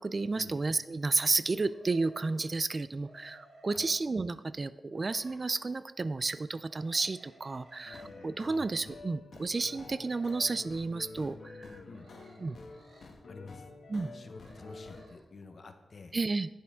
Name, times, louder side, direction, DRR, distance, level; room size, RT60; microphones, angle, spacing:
voice 1, 0.0-11.8 12.4-12.6 13.9-14.1 16.1-16.5, right 3 dB, 35° right, 14 dB, 0.4 m, -32 dB
sound 1, 1.6-2.5 2.9-4.0 4.9-5.9 6.7-8.3 9.6-10.9 11.8-13.1 14.3-15.2, right 1 dB, 70° right, 2.9 m, -57 dB
sound 2, 7.8-15.0, left 3 dB, 70° left, 1.2 m, -48 dB
voice 2, 13.3-13.7 14.1-16.1, left 4 dB, 50° left, 7 dB, 0.9 m, -50 dB
11.0 x 10.0 x 3.6 m, 1.1 s
wide cardioid pair, 105°, 0 cm